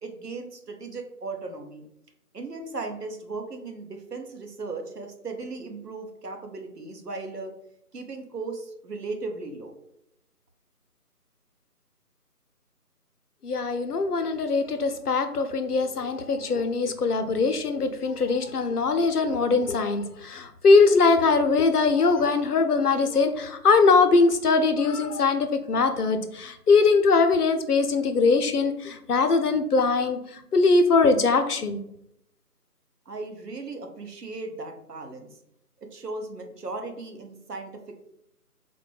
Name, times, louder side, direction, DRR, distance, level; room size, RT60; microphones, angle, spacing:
voice 1, 0.0-1.8 2.3-7.5 7.9-9.7 33.1-35.3 35.9-38.1, right 3 dB, 90° right, 4 dB, 0.9 m, -37 dB
voice 2, 13.4-30.2 30.5-31.8, left 4 dB, 75° left, 8 dB, 0.6 m, -21 dB
4.1 x 2.2 x 3.2 m, 0.77 s
figure-of-eight pair, 165°, 47 cm